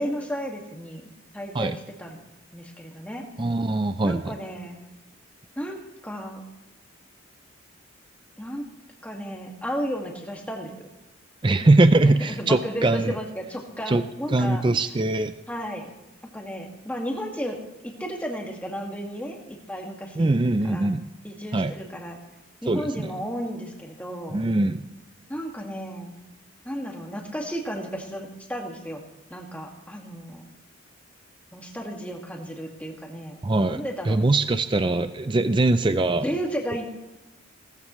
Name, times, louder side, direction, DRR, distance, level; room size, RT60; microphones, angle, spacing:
voice 1, 0.0-2.2 2.5-3.2 4.0-4.8 5.6-6.4 8.4-8.7 9.0-10.9 11.5-11.7 12.0-14.6 15.5-15.9 16.3-20.3 20.6-20.9 21.2-22.2 22.6-24.4 25.3-26.2 26.7-29.0 29.3-30.4 31.5-34.2 36.2-36.8, equal, 5° left, 0 dB, 1.9 m, -33 dB
voice 2, 3.4-4.3 11.4-13.1 13.9-14.0 14.3-15.3 20.2-21.1 21.5-21.7 22.7-23.2 24.3-24.8 33.4-36.3, right 2 dB, 25° right, 11 dB, 0.4 m, -22 dB
18.0 x 14.0 x 3.1 m, 1.0 s
head